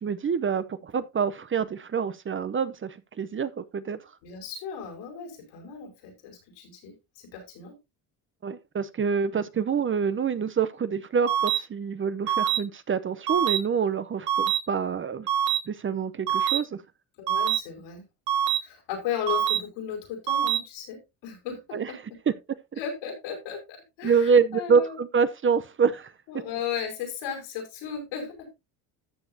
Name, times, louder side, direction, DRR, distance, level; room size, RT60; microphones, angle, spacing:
voice 1, 0.0-4.0 8.4-15.3 15.7-16.8 21.7-21.9 24.0-26.1, right 6 dB, 30° right, 0.7 m, -26 dB
voice 2, 4.2-7.7 17.2-18.0 18.6-22.0 22.8-25.0 26.3-28.5, left 8 dB, 80° left, 5.0 m, -36 dB
sound 1, 11.3-11.6 12.3-12.6 13.3-13.6 14.3-14.6 15.3-15.6 16.3-16.6 17.3-17.6 18.3-18.6 19.3-19.6 20.3-20.6, right 10 dB, 80° right, 2.0 m, -24 dB
13.5 x 7.0 x 2.7 m
supercardioid pair, 80°, 43 cm